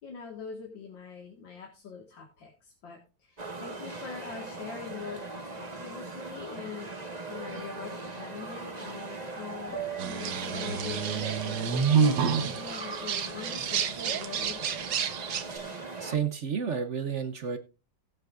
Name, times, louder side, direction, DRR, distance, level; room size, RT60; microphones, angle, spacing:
voice 1, 0.0-6.9 7.3-9.8 10.1-14.9, left 6 dB, 85° left, 1 dB, 2.5 m, -43 dB
sound 1, 3.4-16.2, right 3 dB, 25° right, 1.4 m, -40 dB
Piano, 9.7-15.6, right 8 dB, 55° left, 2.4 m, -45 dB
sound 2, 10.0-15.6, right 6 dB, 75° right, 1.7 m, -28 dB
voice 2, 16.0-17.6, right 7 dB, 50° right, 10 dB, 1.0 m, -31 dB
19.0 x 8.1 x 2.5 m, 0.31 s
omnidirectional pair, 2.0 m